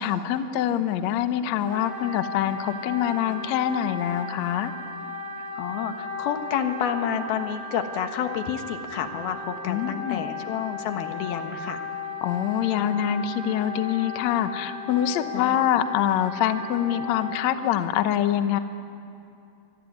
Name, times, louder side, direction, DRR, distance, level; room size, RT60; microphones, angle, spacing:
voice 1, 0.0-4.7 9.7-10.2 12.2-18.6, left 10 dB, 65° left, 9 dB, 1.9 m, -25 dB
Wind instrument woodwind instrument, 1.7-17.5, left 4 dB, 80° right, 8.6 m, -36 dB
voice 2, 5.6-11.8 15.3-15.6, left 8 dB, 90° left, 6 dB, 3.4 m, -29 dB
25.5 x 22.5 x 9.5 m, 2.6 s
omnidirectional pair, 4.2 m